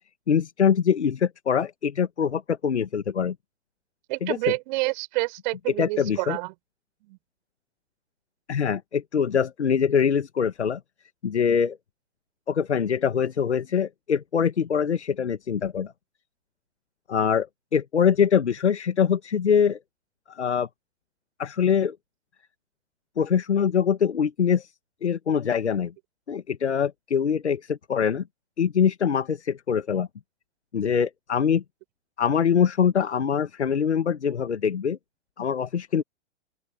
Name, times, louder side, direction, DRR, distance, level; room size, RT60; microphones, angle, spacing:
voice 1, 0.3-3.4 4.2-4.4 5.8-6.4 8.5-10.8 11.2-11.8 12.5-15.9 17.1-17.5 17.7-19.8 20.3-20.7 21.4-22.0 23.2-24.7 25.0-25.9 26.3-28.2 28.6-30.1 30.7-31.6 32.2-35.0 35.4-36.0, left 7 dB, 75° left, 1.8 m, -23 dB
voice 2, 4.1-6.5 7.0-7.2, right 24 dB, 45° right, 5.5 m, -28 dB
open air
figure-of-eight pair, 110°, 34 cm